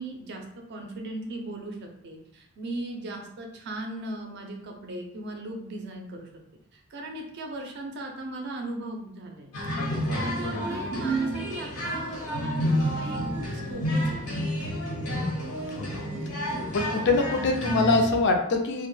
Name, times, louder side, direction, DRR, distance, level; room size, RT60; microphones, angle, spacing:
voice 1, 0.0-6.3 6.7-9.5 10.2-14.5, right 1 dB, 50° right, 2 dB, 0.5 m, -38 dB
sound 1, 9.5-18.1, equal, 80° left, 0.8 m, -29 dB
voice 2, 9.8-10.6 15.8-16.0 16.7-18.9, left 3 dB, 55° left, 3 dB, 0.4 m, -25 dB
2.1 x 2.1 x 3.1 m, 0.72 s
head